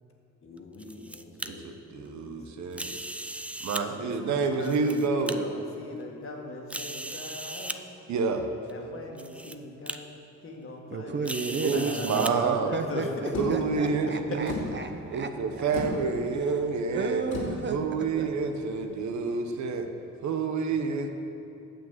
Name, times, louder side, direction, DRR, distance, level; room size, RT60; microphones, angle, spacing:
voice 1, 0.4-1.6 1.9-2.4 4.0-7.8 8.7-10.2 10.4-13.1, left 2 dB, 45° left, 0 dB, 1.9 m, -41 dB
sound 1, 0.6-1.5 2.7-3.8 4.5-5.3 6.0-6.1 6.7-7.8 8.7-8.8 9.2-9.5 9.9-10.0 11.2-12.3, right 1 dB, 5° right, 0.4 m, -37 dB
voice 2, 1.5-3.0 3.6-5.4 8.1-8.5 11.6-12.7 13.4-14.5 15.1-17.2 17.7-19.9 20.2-21.1, right 4 dB, 70° right, 6 dB, 1.0 m, -28 dB
voice 3, 10.9-15.3 15.6-15.8 16.9-17.8 18.2-18.3, right 4 dB, 40° right, 6 dB, 0.7 m, -33 dB
sound 2, 13.3-18.9, left 2 dB, 70° left, 2.8 m, -38 dB
9.2 x 7.3 x 7.3 m, 2.8 s
cardioid pair, 90°, 30 cm